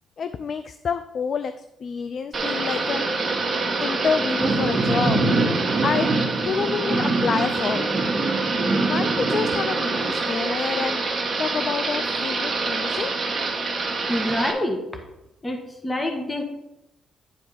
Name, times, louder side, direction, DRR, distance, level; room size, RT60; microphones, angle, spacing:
voice 1, 0.2-3.1 3.8-5.3 5.8-6.1 6.4-7.9 8.9-13.1, left 6 dB, 50° left, 10 dB, 0.4 m, -28 dB
Thunder / Rain, 2.3-14.5, right 3 dB, 35° right, 1.7 m, -24 dB
voice 2, 14.1-14.8 15.4-16.4, left 1 dB, 20° left, 4 dB, 1.5 m, -26 dB
10.0 x 4.5 x 5.7 m, 0.87 s
cardioid pair, 90°, 0 cm